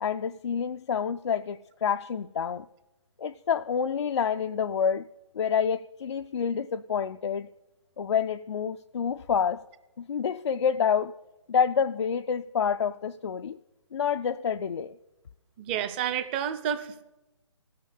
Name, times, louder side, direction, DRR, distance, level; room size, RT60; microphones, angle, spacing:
voice 1, 0.0-2.7 3.2-5.1 5.3-7.5 8.0-9.6 10.0-11.1 11.5-13.6 13.9-14.9, left 7 dB, 65° left, 8 dB, 0.4 m, -28 dB
voice 2, 15.6-17.0, right 9 dB, 20° right, 11 dB, 0.7 m, -30 dB
15.0 x 6.7 x 8.4 m, 1.0 s
figure-of-eight pair, 145°, 16 cm